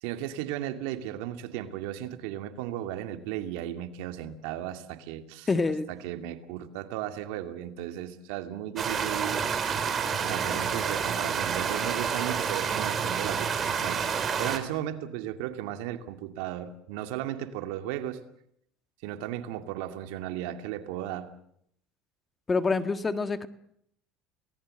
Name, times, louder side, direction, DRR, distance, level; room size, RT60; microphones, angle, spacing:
voice 1, 0.0-5.5 5.9-9.5 10.2-14.1 14.4-18.2 19.0-21.3, right 12 dB, 80° right, 2.4 m, -35 dB
voice 2, 5.5-5.9 22.5-23.5, left 4 dB, 20° left, 1.5 m, -26 dB
sound 1, 8.8-14.6, right 6 dB, 35° right, 3.7 m, -29 dB
28.0 x 19.0 x 7.9 m
supercardioid pair, 120°, 0 cm